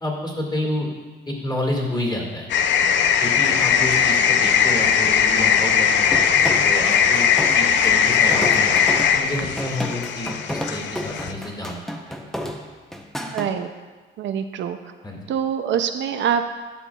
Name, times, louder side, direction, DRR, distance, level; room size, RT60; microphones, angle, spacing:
voice 1, 0.0-0.9 1.3-2.5 3.2-7.3 7.5-11.8 12.1-12.2 15.0-15.2, left 1 dB, 20° left, -1 dB, 1.9 m, -29 dB
sound 1, 2.5-11.3, left 7 dB, 65° left, 0.4 m, -19 dB
sound 2, 6.1-13.5, equal, ahead, 0.6 m, -31 dB
voice 2, 13.3-13.7 14.2-14.9 15.3-16.6, right 8 dB, 70° right, 8 dB, 0.5 m, -25 dB
11.5 x 5.9 x 2.3 m, 1.3 s
cardioid pair, 90°, 20 cm